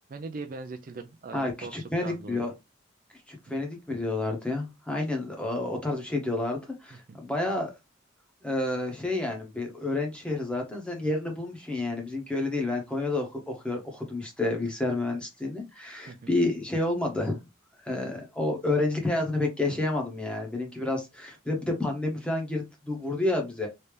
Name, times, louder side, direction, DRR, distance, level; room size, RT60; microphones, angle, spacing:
voice 1, 0.1-2.5 6.9-7.2 16.1-16.3, right 3 dB, 45° right, 0.4 m, -40 dB
voice 2, 1.3-2.5 3.3-7.7 8.4-17.4 17.8-23.7, left 2 dB, 5° left, 0.9 m, -30 dB
3.2 x 2.7 x 3.2 m
head